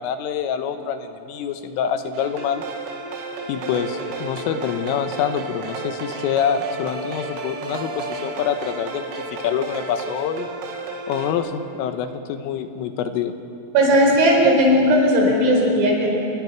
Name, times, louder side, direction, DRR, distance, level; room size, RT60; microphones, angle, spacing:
voice 1, 0.0-2.6 3.5-10.5 11.1-13.4, left 8 dB, 85° left, 8 dB, 3.8 m, -26 dB
sound 1, 2.1-11.3, right 3 dB, 90° right, 4.6 m, -32 dB
voice 2, 13.7-16.1, equal, 70° right, -1 dB, 6.9 m, -16 dB
28.5 x 22.0 x 6.0 m, 2.8 s
omnidirectional pair, 5.7 m